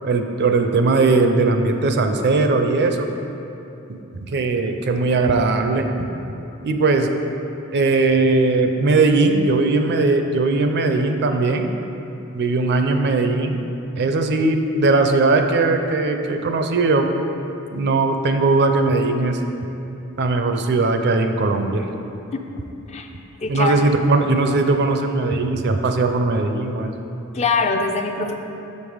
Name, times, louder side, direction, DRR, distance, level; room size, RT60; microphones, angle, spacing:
voice 1, 0.0-3.1 4.1-6.1 6.6-7.1 7.7-11.7 12.3-13.7 14.0-17.1 17.7-19.4 20.2-21.8 23.5-26.9, right 3 dB, 50° right, 6 dB, 0.5 m, -19 dB
voice 2, 23.4-23.7 27.3-28.3, left 4 dB, 30° left, 3 dB, 0.4 m, -22 dB
6.4 x 5.3 x 4.9 m, 2.8 s
head